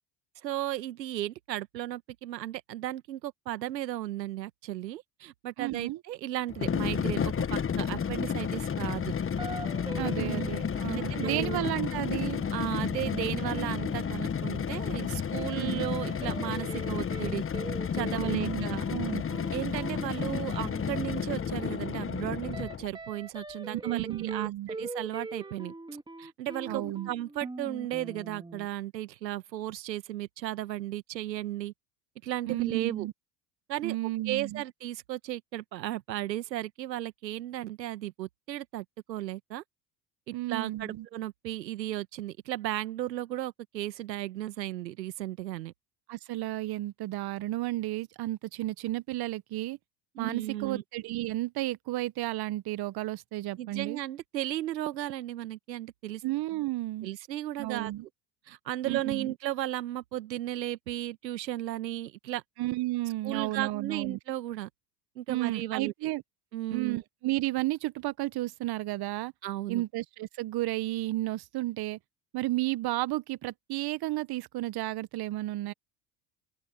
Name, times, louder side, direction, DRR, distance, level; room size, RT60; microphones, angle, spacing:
voice 1, 0.4-9.1 10.2-10.5 10.9-11.7 12.5-17.4 17.9-18.8 19.5-25.7 26.2-31.7 32.2-33.1 33.7-33.9 34.2-39.6 40.3-45.7 50.1-50.8 53.6-56.2 57.0-57.9 58.5-62.4 63.2-64.7 65.1-65.9 66.5-67.0 69.4-69.8, right 14 dB, 85° right, 1.6 m, -35 dB
voice 2, 5.6-6.0 10.0-12.4 15.5-15.9 18.1-19.2 23.7-24.7 26.7-27.1 32.5-33.1 33.8-34.6 40.3-41.1 46.1-49.8 50.2-54.0 56.2-57.1 57.6-58.0 58.8-59.3 62.6-64.2 65.3-66.2 66.7-69.3 69.7-72.0 72.3-75.7, right 17 dB, 50° right, 1.3 m, -32 dB
sound 1, 6.5-22.9, left 7 dB, 25° left, 1.4 m, -32 dB
sound 2, 9.4-15.0 15.3-15.5 15.8-28.7, right 2 dB, 10° right, 2.1 m, -42 dB
open air
hypercardioid pair, 75°, 49 cm